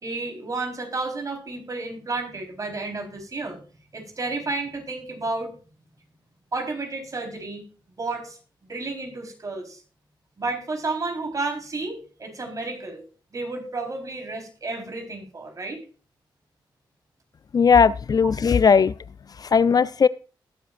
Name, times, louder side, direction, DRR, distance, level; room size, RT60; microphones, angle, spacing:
voice 1, 0.0-3.6 3.9-5.5 6.5-7.6 7.9-9.8 10.4-13.0 13.3-15.8, right 3 dB, 40° right, 3 dB, 4.0 m, -31 dB
voice 2, 17.5-18.9 19.4-20.1, left 6 dB, 50° left, 17 dB, 0.4 m, -17 dB
20.0 x 7.7 x 2.5 m, 0.37 s
cardioid pair, 70°, 9 cm